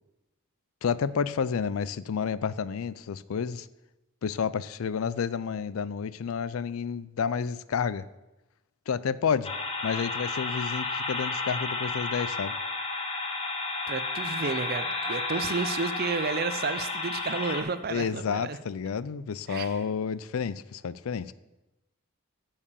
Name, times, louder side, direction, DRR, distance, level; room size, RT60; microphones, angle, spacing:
voice 1, 0.8-3.7 4.2-8.1 8.9-9.5 9.8-12.5 17.9-21.3, left 6 dB, 80° left, 17 dB, 0.4 m, -30 dB
sound 1, 9.4-17.6, left 3 dB, 25° left, 1.0 m, -32 dB
voice 2, 13.9-18.6 19.5-19.8, right 4 dB, 45° right, 12 dB, 0.5 m, -31 dB
9.8 x 5.0 x 6.9 m, 1.0 s
head